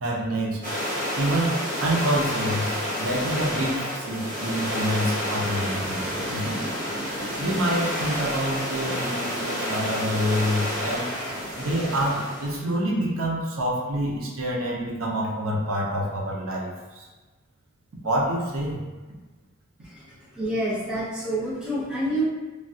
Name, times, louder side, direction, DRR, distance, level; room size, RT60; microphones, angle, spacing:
voice 1, 0.0-0.6 1.2-6.6 7.4-11.1 11.6-17.1 18.0-18.8, equal, 85° right, -2 dB, 0.6 m, -27 dB
sound 1, 0.6-12.6, equal, 40° right, 1.1 m, -29 dB
voice 2, 19.8-22.2, right 1 dB, 5° right, -8 dB, 0.6 m, -28 dB
3.1 x 2.3 x 2.7 m, 1.3 s
head